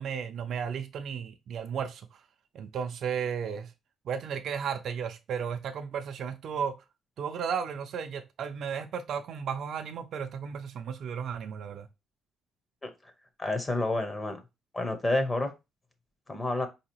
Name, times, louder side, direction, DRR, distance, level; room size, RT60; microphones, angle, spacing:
voice 1, 0.0-2.0 2.5-3.7 4.1-6.8 7.2-11.9, right 7 dB, 60° right, 0.4 m, -34 dB
voice 2, 12.8-13.1 13.4-14.4 14.7-15.5 16.3-16.7, left 2 dB, 20° left, 0.6 m, -29 dB
4.6 x 2.8 x 2.9 m
cardioid pair, 130°, 0 cm